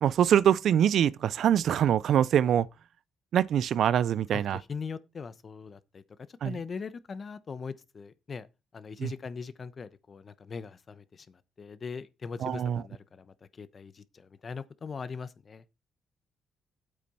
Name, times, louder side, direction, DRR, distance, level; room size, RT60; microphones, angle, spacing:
voice 1, 0.0-2.7 3.3-4.6 6.4-6.6 9.0-9.1 12.4-12.8, right 9 dB, 70° right, 0.5 m, -24 dB
voice 2, 4.3-6.0 6.3-8.5 8.7-15.6, left 5 dB, 40° left, 1.0 m, -41 dB
8.5 x 7.4 x 5.5 m
cardioid pair, 90°, 0 cm